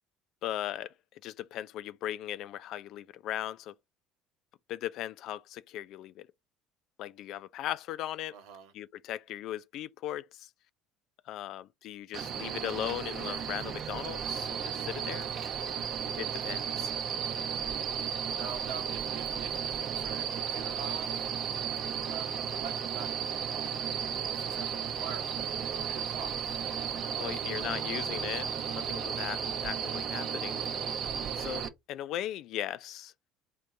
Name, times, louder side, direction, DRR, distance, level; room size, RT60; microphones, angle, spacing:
voice 1, 0.4-0.9 1.2-3.7 4.7-6.3 7.0-8.3 8.7-10.5 11.3-15.3 16.2-16.9 27.1-30.6 31.3-33.1, left 12 dB, 60° left, 0.3 m, -38 dB
voice 2, 8.3-8.7 16.2-16.8 18.3-21.3 22.0-23.1 23.5-23.7 24.3-28.3, right 7 dB, 75° right, 1.0 m, -46 dB
sound 1, 12.1-31.7, right 8 dB, 55° right, 0.7 m, -34 dB
3.7 x 2.5 x 4.3 m
hypercardioid pair, 70°, 0 cm